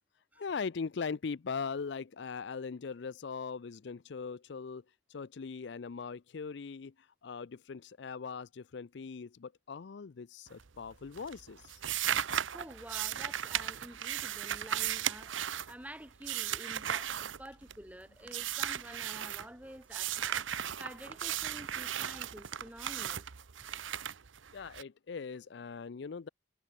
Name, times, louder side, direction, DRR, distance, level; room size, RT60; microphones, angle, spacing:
voice 1, 0.4-4.8 5.1-11.8 24.5-26.3, left 5 dB, 65° left, 0.5 m, -40 dB
sound 1, 10.5-10.9 11.1-17.9 18.3-19.5 19.9-24.8, right 10 dB, 85° right, 0.9 m, -36 dB
voice 2, 12.5-23.2, right 1 dB, 10° right, 4.4 m, -49 dB
head